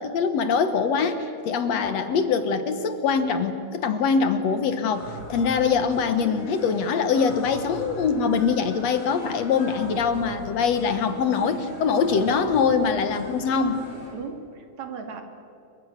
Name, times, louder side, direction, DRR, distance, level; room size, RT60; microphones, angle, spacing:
voice 1, 0.0-13.8, left 5 dB, 65° left, 9 dB, 2.3 m, -23 dB
sound 1, 4.9-14.1, left 1 dB, 35° left, 8.3 m, -41 dB
voice 2, 10.8-11.6 12.0-12.3 14.1-15.2, right 6 dB, 70° right, 4 dB, 3.6 m, -38 dB
27.5 x 24.0 x 6.6 m, 2.6 s
omnidirectional pair, 3.4 m